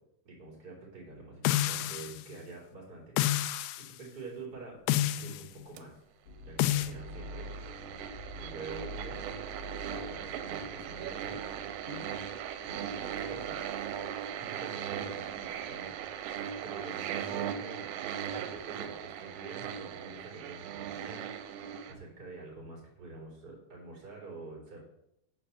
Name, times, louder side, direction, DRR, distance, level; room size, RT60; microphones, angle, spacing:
voice 1, 0.2-3.1 3.8-5.9 6.4-7.5 8.3-11.4 11.8-12.1 12.6-13.6 14.4-16.3 16.6-17.9 18.4-21.3 21.5-24.8, right 3 dB, 25° right, -3 dB, 3.0 m, -47 dB
sound 1, 1.5-2.2 3.2-3.9 4.9-5.5 6.6-6.9, left 14 dB, 90° left, 2.4 m, -29 dB
sound 2, 5.8-5.9 6.9-21.9, right 9 dB, 80° right, 2.9 m, -38 dB
sound 3, 6.3-15.7 16.1-16.5 17.2-17.5, left 1 dB, 70° left, 4.0 m, -48 dB
8.8 x 4.9 x 7.0 m, 0.80 s
omnidirectional pair, 5.3 m